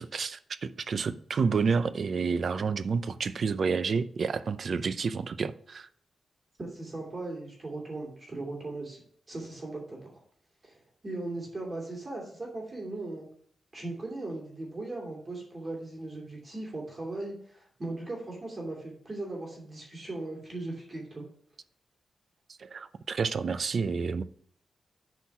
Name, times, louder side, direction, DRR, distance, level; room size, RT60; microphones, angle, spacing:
voice 1, 0.0-5.9 22.6-24.2, right 5 dB, 55° right, 0.5 m, -29 dB
voice 2, 6.6-9.0 9.3-10.1 10.6-10.8 11.0-13.3 13.7-21.2, right 2 dB, 30° right, 2.7 m, -38 dB
8.2 x 4.5 x 5.9 m
wide cardioid pair, 130°, 0 cm